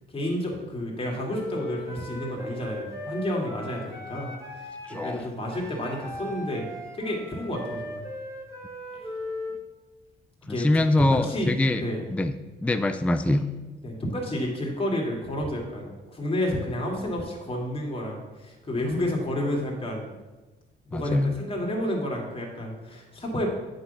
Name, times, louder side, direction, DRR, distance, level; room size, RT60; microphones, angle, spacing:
voice 1, 0.1-6.7 6.9-8.0 10.5-10.7 11.1-11.5 11.7-12.1 13.8-20.1 20.9-23.5, left 1 dB, 30° left, -2 dB, 2.4 m, -30 dB
Wind instrument woodwind instrument, 1.3-9.6, left 1 dB, 15° right, 1.7 m, -38 dB
voice 2, 4.9-5.3 10.5-11.8 12.1-12.3 12.6-13.4 20.9-21.4, left 1 dB, 5° left, 9 dB, 0.4 m, -24 dB
8.7 x 3.9 x 6.7 m, 1.2 s
cardioid pair, 90°, 20 cm